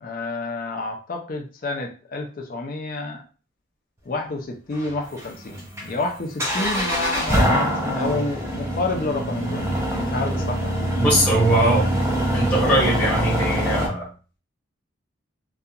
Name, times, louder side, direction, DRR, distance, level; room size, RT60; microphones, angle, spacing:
voice 1, 0.0-3.2 4.1-11.0, left 3 dB, 45° left, 3 dB, 0.4 m, -29 dB
sound 1, 4.7-13.9, equal, 15° right, 0.5 m, -24 dB
voice 2, 11.0-11.9 12.3-14.1, right 1 dB, 10° left, -6 dB, 0.9 m, -20 dB
2.8 x 2.3 x 2.3 m, 0.36 s
head